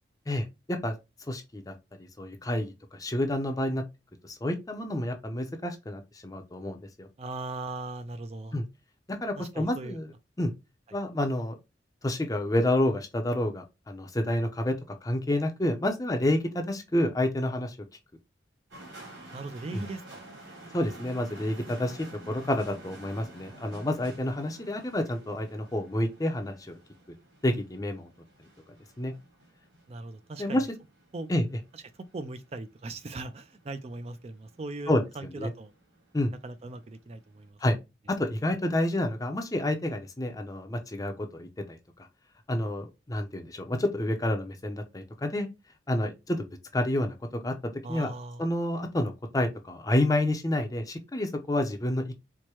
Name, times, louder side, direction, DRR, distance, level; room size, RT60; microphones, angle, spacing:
voice 1, 0.3-0.9 1.3-1.7 2.2-3.8 4.2-7.1 8.5-8.6 9.1-10.1 10.4-10.5 10.9-11.6 12.0-14.8 15.0-17.8 19.7-19.8 20.7-22.0 22.3-26.7 27.4-28.1 29.0-29.1 30.4-30.7 31.3-31.4 34.9-35.0 35.4-35.5 36.1-36.3 37.6-37.8 38.1-41.8 42.5-45.5 45.9-46.4 46.7-47.1 47.4-48.1 48.4-52.2, left 1 dB, 20° left, 0.5 m, -29 dB
voice 2, 7.2-8.5 9.4-10.0 19.3-20.2 29.9-30.7 31.1-31.3 32.1-35.7 36.4-37.6 47.8-48.5, right 2 dB, 35° right, 0.4 m, -39 dB
sound 1, 18.7-37.5, right 1 dB, 85° right, 2.1 m, -51 dB
4.6 x 2.1 x 2.9 m
head